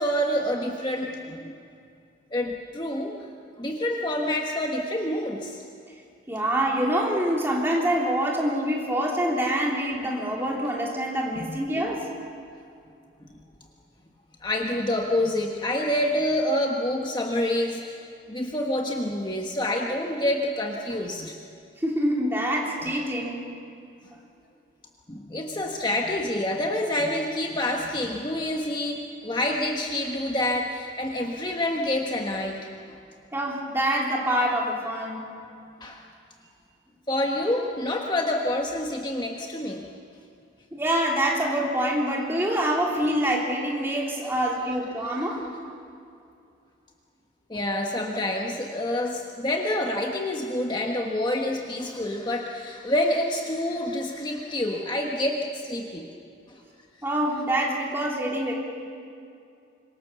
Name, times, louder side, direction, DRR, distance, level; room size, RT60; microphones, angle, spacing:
voice 1, 0.0-1.5 2.3-3.2 3.6-5.6 11.4-11.5 14.4-18.0 18.3-21.3 25.1-32.7 35.8-36.0 37.1-39.9 47.5-56.1 56.5-56.6, left 1 dB, 25° left, 1 dB, 1.3 m, -27 dB
voice 2, 6.3-12.1 21.8-23.5 33.3-35.3 40.7-45.5 57.0-58.5, right 1 dB, 10° right, -2 dB, 3.4 m, -25 dB
26.5 x 23.5 x 6.9 m, 2.5 s
head